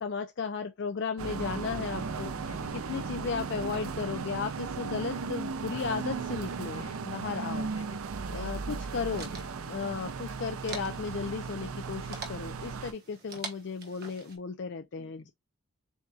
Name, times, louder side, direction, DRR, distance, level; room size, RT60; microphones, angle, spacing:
voice 1, 0.0-2.3 2.9-7.7 8.3-9.3 9.6-15.3, left 5 dB, 55° left, 0.4 m, -35 dB
sound 1, 1.2-12.9, right 5 dB, 85° right, 0.5 m, -36 dB
voice 2, 2.0-3.1 6.7-7.1 7.6-8.0 9.3-9.5 11.9-12.2 12.5-12.8 15.0-15.3, left 1 dB, 85° left, 1.1 m, -50 dB
sound 2, 8.7-14.4, right 4 dB, 50° right, 1.3 m, -46 dB
7.1 x 2.7 x 2.3 m
head